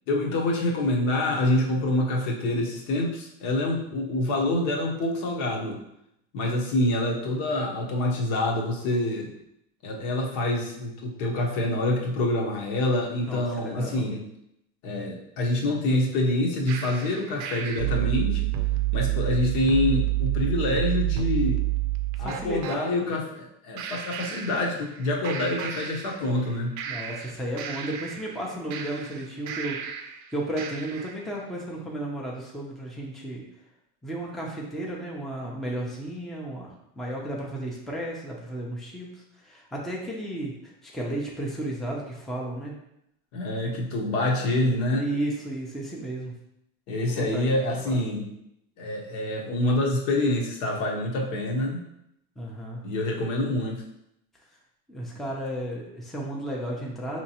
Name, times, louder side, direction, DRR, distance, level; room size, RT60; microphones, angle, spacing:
voice 1, 0.1-5.8 6.3-9.3 9.8-14.2 14.8-18.5 18.9-21.6 22.2-26.7 43.3-45.0 46.9-48.3 48.8-51.8 52.8-53.8, left 1 dB, 65° left, 0 dB, 1.0 m, -26 dB
voice 2, 13.2-14.0 22.2-23.1 26.9-29.8 30.3-33.4 34.0-40.5 40.8-42.7 44.9-46.3 47.1-48.0 52.4-52.8 54.9-57.2, right 1 dB, ahead, -3 dB, 0.6 m, -33 dB
sound 1, 16.7-22.8 23.8-25.0 25.2-26.5 26.8-30.2 30.6-31.2, right 14 dB, 60° right, 0.6 m, -29 dB
4.4 x 3.0 x 2.9 m, 0.80 s
supercardioid pair, 125°, 33 cm